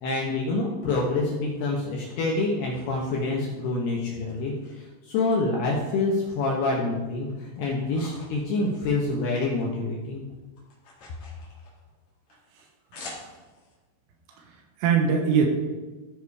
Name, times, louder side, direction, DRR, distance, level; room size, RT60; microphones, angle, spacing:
voice 1, 0.0-10.2, left 3 dB, 70° left, -2 dB, 2.5 m, -27 dB
sound 1, 1.4-3.8 4.3-5.4 5.7-6.7 7.1-9.7 9.9-13.7, left 2 dB, 45° left, 2.7 m, -49 dB
voice 2, 14.4-15.5, right 6 dB, 80° right, 2 dB, 3.6 m, -23 dB
15.0 x 5.1 x 4.8 m, 1.2 s
omnidirectional pair, 6.0 m